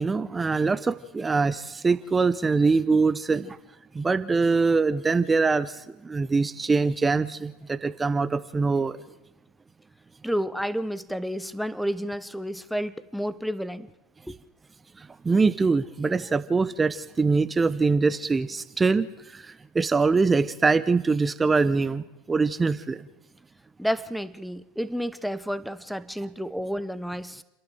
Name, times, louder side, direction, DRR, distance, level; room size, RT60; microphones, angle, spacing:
voice 1, 0.0-3.6 3.9-9.0 15.0-23.1, right 4 dB, 20° right, 0.8 m, -23 dB
voice 2, 10.2-13.9 14.3-14.4 23.8-27.4, equal, ahead, 1.0 m, -30 dB
29.5 x 11.5 x 7.7 m
hypercardioid pair, 90°, 0 cm